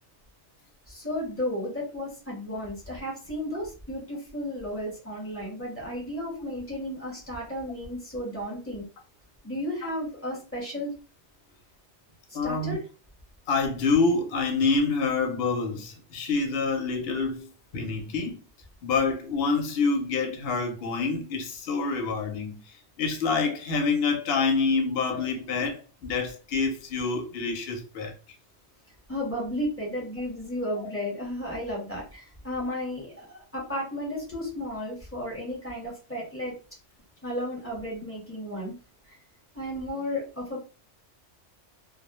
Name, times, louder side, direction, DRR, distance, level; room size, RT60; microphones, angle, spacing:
voice 1, 0.9-8.8 9.4-10.9 12.4-12.8 29.1-36.5 37.2-38.8 39.5-40.6, left 1 dB, 10° left, 1.1 m, -33 dB
voice 2, 12.3-12.8 13.5-18.4 18.8-22.6 23.0-28.1, left 4 dB, 65° left, 0.8 m, -27 dB
2.2 x 2.1 x 2.9 m
omnidirectional pair, 1.2 m